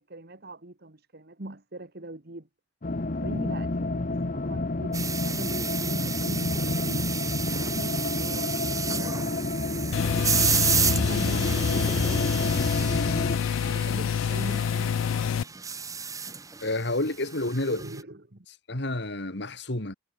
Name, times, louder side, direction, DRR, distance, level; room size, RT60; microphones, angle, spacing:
voice 1, 0.0-2.5 3.1-7.1 7.6-9.7 10.7-13.1 13.6-15.5 17.6-18.5, right 1 dB, 55° right, 1.9 m, -41 dB
sound 1, 2.8-13.4, left 2 dB, 45° left, 0.9 m, -29 dB
sound 2, 4.9-18.0, right 6 dB, 15° right, 1.5 m, -32 dB
sound 3, 9.9-15.4, left 7 dB, 85° left, 0.3 m, -27 dB
voice 2, 16.6-17.8 18.7-19.9, left 2 dB, 60° left, 2.8 m, -29 dB
head